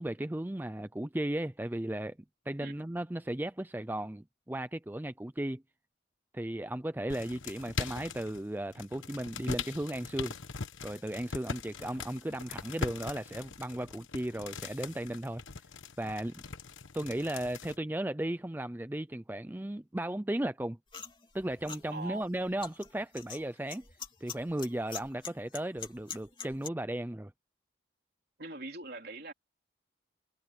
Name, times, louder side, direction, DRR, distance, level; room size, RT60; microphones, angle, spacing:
voice 1, 0.0-2.2 2.5-5.6 6.3-10.4 10.8-15.4 16.0-16.4 16.9-20.8 21.3-23.8 24.2-27.3, right 1 dB, 10° right, 0.4 m, -35 dB
sound 1, 7.1-8.4 8.7-17.8, left 4 dB, 85° left, 1.1 m, -41 dB
sound 2, 20.9-26.7, left 6 dB, 25° left, 2.9 m, -44 dB
voice 2, 21.9-22.2 28.4-29.3, right 2 dB, 50° right, 4.0 m, -42 dB
head